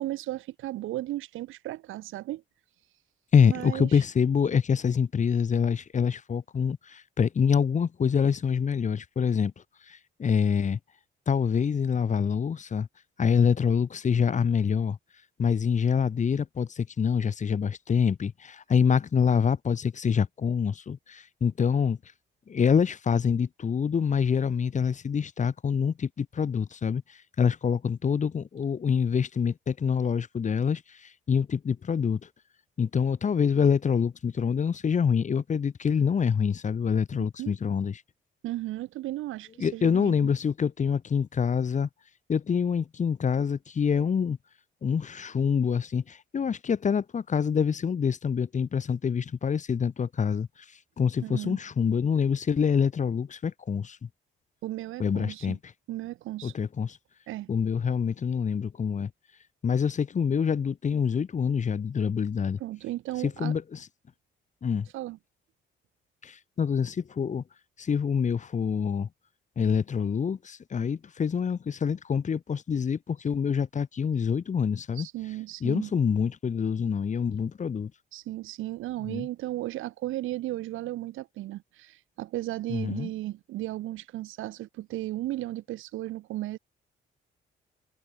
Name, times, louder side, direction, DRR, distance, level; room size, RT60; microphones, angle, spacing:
voice 1, 0.0-2.4 3.5-4.0 37.4-37.6 38.4-40.3 51.2-51.6 54.6-55.6 55.9-56.5 57.3-57.5 62.6-63.5 64.9-65.2 75.0-75.9 78.1-86.6, right 15 dB, 90° right, 2.1 m, -35 dB
voice 2, 3.3-9.5 9.9-10.8 11.3-12.9 13.2-15.0 15.4-22.0 22.5-32.3 32.8-38.0 39.6-41.9 42.3-44.4 44.8-50.5 51.0-54.1 55.0-55.6 56.4-57.0 57.5-59.1 59.6-62.6 63.2-63.9 64.6-64.9 66.2-67.4 67.8-69.1 69.6-75.1 75.6-77.9 79.1-79.3 82.7-83.1, left 6 dB, 40° left, 1.0 m, -26 dB
cardioid pair, 90°, 20 cm